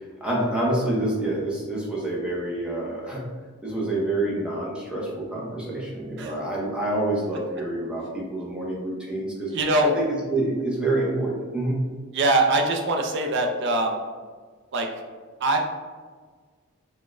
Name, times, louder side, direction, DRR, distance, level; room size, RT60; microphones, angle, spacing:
voice 1, 0.2-3.2 3.6-9.6 9.8-11.8, right 1 dB, 5° right, -4 dB, 0.6 m, -27 dB
voice 2, 9.5-9.9 12.1-14.0 14.7-14.9 15.4-15.6, right 2 dB, 55° right, 3 dB, 0.4 m, -22 dB
4.0 x 2.1 x 2.4 m, 1.5 s
head